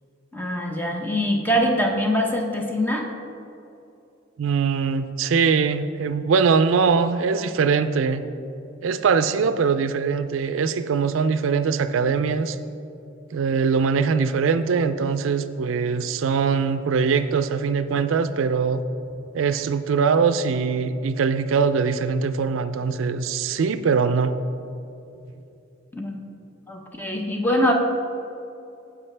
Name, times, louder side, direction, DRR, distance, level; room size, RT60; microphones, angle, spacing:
voice 1, 0.3-3.1 25.9-26.2 26.7-27.7, equal, 10° left, 1 dB, 0.8 m, -23 dB
voice 2, 4.4-8.2 8.8-12.6 13.3-18.8 19.3-24.4, right 5 dB, 85° right, 11 dB, 0.4 m, -22 dB
14.5 x 4.9 x 3.3 m, 2.8 s
head